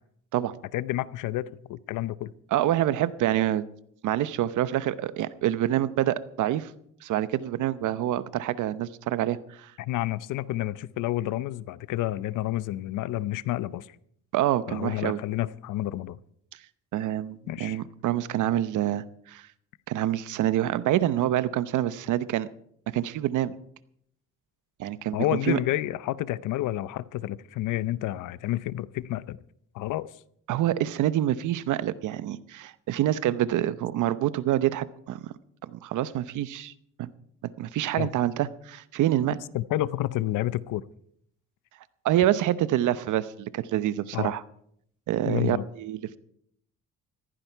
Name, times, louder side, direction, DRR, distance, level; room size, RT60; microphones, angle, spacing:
voice 1, 0.7-2.3 9.8-13.9 14.7-16.2 17.5-17.8 25.1-29.4 29.7-30.1 38.0-38.1 39.5-40.8 44.1-44.3 45.3-45.7, left 15 dB, 85° left, 0.7 m, -29 dB
voice 2, 2.5-3.6 4.0-6.7 7.0-9.7 14.3-15.2 16.9-19.5 19.9-22.5 22.9-23.5 24.8-25.6 30.5-35.3 35.6-36.7 37.0-37.1 37.4-39.4 42.0-44.4 45.1-46.2, right 12 dB, 80° right, 0.8 m, -26 dB
15.5 x 15.0 x 4.6 m
cardioid pair, 90°, 30 cm